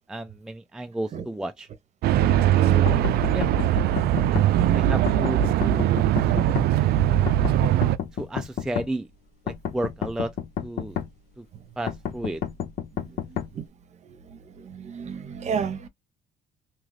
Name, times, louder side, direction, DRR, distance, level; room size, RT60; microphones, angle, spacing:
voice 1, 0.1-1.7 2.6-3.9 4.7-6.2 8.1-9.1 9.4-10.4 10.6-11.0 11.4-11.5 11.8-12.4, right 1 dB, 5° right, 0.3 m, -33 dB
sound 1, 2.0-8.0, right 12 dB, 70° right, 0.4 m, -21 dB
sound 2, 2.9-4.5 5.1-6.7 7.3-8.9 9.5-11.1 11.9-13.5, left 9 dB, 70° left, 0.9 m, -30 dB
voice 2, 13.0-13.6 14.3-15.9, right 6 dB, 40° right, 0.9 m, -33 dB
3.0 x 2.4 x 3.2 m
cardioid pair, 110°, 17 cm